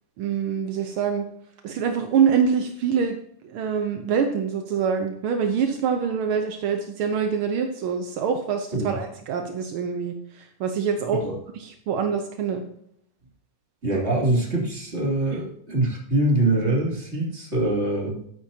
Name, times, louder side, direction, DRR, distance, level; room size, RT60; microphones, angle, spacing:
voice 1, 0.2-1.2 1.6-3.2 3.4-11.2 11.5-12.6, right 6 dB, 75° right, 5 dB, 1.2 m, -25 dB
voice 2, 13.8-18.2, right 2 dB, 20° right, -3 dB, 2.9 m, -24 dB
12.5 x 9.7 x 2.8 m, 0.70 s
omnidirectional pair, 3.5 m